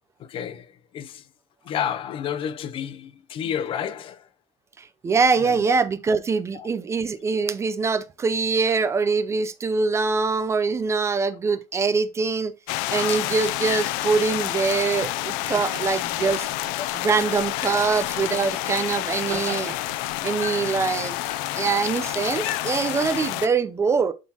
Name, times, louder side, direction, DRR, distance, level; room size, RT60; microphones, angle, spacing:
voice 1, 0.2-1.3 1.6-4.3 5.4-5.8 6.5-6.7 16.3-16.5 16.8-16.9 18.0-18.2 18.7-18.8 20.3-20.4 21.3-21.8, left 9 dB, 40° left, 0.6 m, -32 dB
voice 2, 4.8-12.5 12.9-16.5 16.9-19.7 20.2-21.2 21.5-24.1, right 4 dB, 20° right, 0.5 m, -23 dB
sound 1, 12.7-23.5, left 16 dB, 90° left, 0.5 m, -28 dB
sound 2, 14.5-23.1, right 8 dB, 90° right, 2.7 m, -43 dB
11.0 x 3.8 x 2.9 m
cardioid pair, 150°, 14 cm